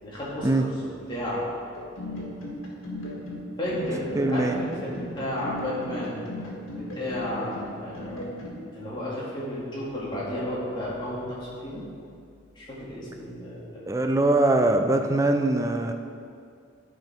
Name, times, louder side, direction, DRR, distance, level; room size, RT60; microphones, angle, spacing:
voice 1, 0.0-1.5 3.6-6.2 6.7-8.2 8.7-11.8 12.6-13.9, left 1 dB, 20° left, -8 dB, 2.1 m, -33 dB
sound 1, 1.7-8.6, equal, 90° left, 1.8 m, -36 dB
voice 2, 4.1-4.6 13.9-15.9, right 2 dB, 15° right, 5 dB, 0.4 m, -22 dB
10.5 x 4.9 x 4.5 m, 2.3 s
head